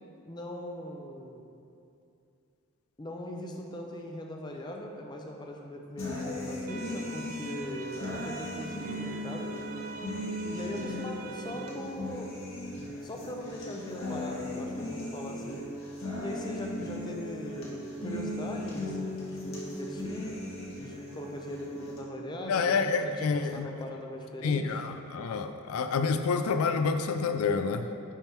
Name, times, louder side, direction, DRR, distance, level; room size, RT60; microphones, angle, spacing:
voice 1, 0.3-1.4 3.0-9.5 10.5-12.3 13.0-15.6 16.2-20.4 20.8-24.6, left 1 dB, 20° left, 1 dB, 0.6 m, -40 dB
sound 1, 6.0-22.0, left 1 dB, 65° left, 1.6 m, -37 dB
sound 2, 6.7-11.7, right 4 dB, 40° right, 0.4 m, -45 dB
voice 2, 22.5-23.7 24.4-27.9, left 5 dB, 85° left, 8 dB, 0.4 m, -28 dB
9.9 x 3.5 x 4.4 m, 2.6 s
head